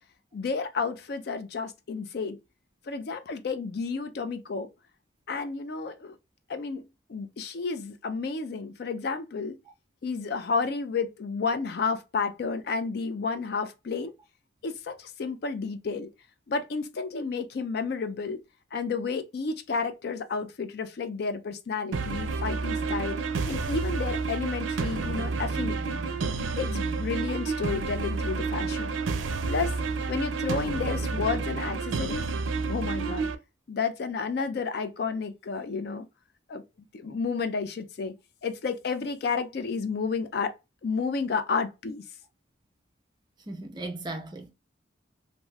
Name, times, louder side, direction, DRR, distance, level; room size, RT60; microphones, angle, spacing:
voice 1, 0.3-2.4 2.9-4.7 5.3-6.2 6.5-9.6 10.0-14.1 14.6-16.1 16.5-18.4 18.7-23.2 23.5-26.0 26.6-29.0 29.5-29.7 30.1-32.3 32.7-33.3 33.7-36.1 36.5-36.6 36.9-38.1 38.4-40.5 40.8-42.0, left 4 dB, 55° left, 0.4 m, -31 dB
sound 1, 21.9-33.3, right 4 dB, 85° right, 0.4 m, -30 dB
voice 2, 43.5-44.5, right 2 dB, 20° right, 0.5 m, -36 dB
2.6 x 2.3 x 3.1 m
head